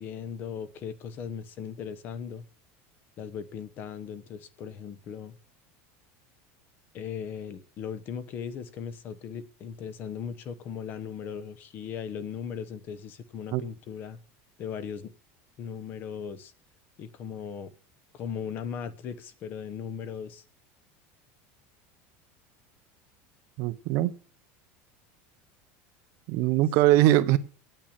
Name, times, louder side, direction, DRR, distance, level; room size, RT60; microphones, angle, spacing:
voice 1, 0.0-2.4 3.2-5.4 6.9-14.2 14.6-15.1 15.6-16.5 17.0-17.7 18.1-20.4, left 7 dB, 30° left, 0.9 m, -38 dB
voice 2, 23.6-24.1 26.3-27.4, right 15 dB, 45° right, 0.7 m, -21 dB
9.1 x 8.6 x 8.6 m
cardioid pair, 180°, 7 cm